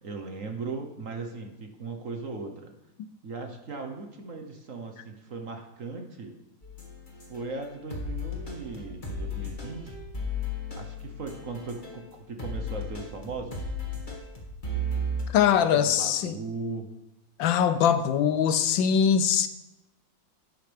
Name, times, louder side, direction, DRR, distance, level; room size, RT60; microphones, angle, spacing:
voice 1, 0.0-2.7 3.2-6.3 7.3-10.0 10.8-13.7 15.7-16.9, right 3 dB, 50° right, 4 dB, 1.3 m, -38 dB
sound 1, 6.6-12.1 12.4-15.2, left 1 dB, 25° left, 1.8 m, -35 dB
voice 2, 15.3-16.3 17.4-19.5, left 8 dB, 80° left, 11 dB, 1.4 m, -22 dB
11.5 x 10.5 x 3.5 m, 0.91 s
omnidirectional pair, 2.1 m